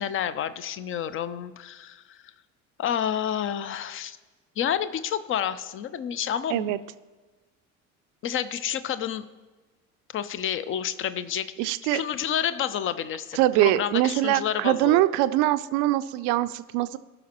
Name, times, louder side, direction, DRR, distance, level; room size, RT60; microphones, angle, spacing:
voice 1, 0.0-2.2 2.8-4.2 4.6-6.7 8.2-9.3 10.1-15.0, left 9 dB, 30° left, 14 dB, 0.6 m, -29 dB
voice 2, 11.6-12.0 13.4-17.0, right 15 dB, 45° right, 13 dB, 0.6 m, -23 dB
18.5 x 6.4 x 3.0 m, 1.2 s
figure-of-eight pair, 60°, 43 cm